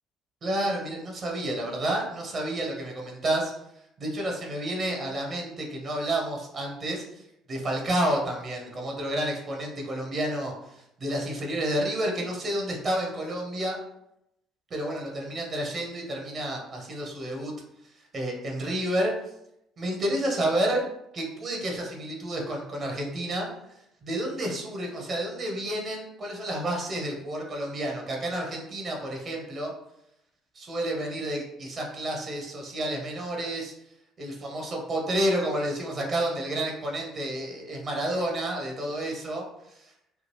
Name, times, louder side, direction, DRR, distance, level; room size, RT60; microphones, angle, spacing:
voice 1, 0.4-3.5 4.0-7.0 7.5-13.8 14.7-17.5 18.1-19.1 19.8-20.8 21.1-23.5 24.0-29.7 30.5-33.7 34.2-39.9, right 1 dB, 45° right, 0 dB, 1.2 m, -30 dB
3.7 x 2.4 x 3.0 m, 0.82 s
hypercardioid pair, 55°, 0 cm